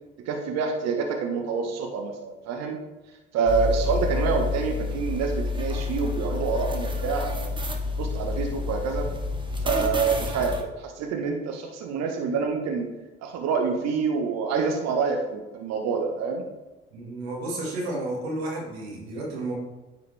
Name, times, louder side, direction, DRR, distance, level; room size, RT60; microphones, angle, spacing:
voice 1, 0.2-2.8 3.3-7.5 8.0-9.1 9.6-12.9 13.2-16.4, right 5 dB, 60° right, 3 dB, 1.2 m, -27 dB
sound 1, 3.5-10.6, left 3 dB, 15° right, 1.1 m, -29 dB
voice 2, 16.9-19.5, right 2 dB, 85° right, -3 dB, 2.0 m, -32 dB
9.4 x 4.7 x 3.4 m, 1.1 s
hypercardioid pair, 65°, 31 cm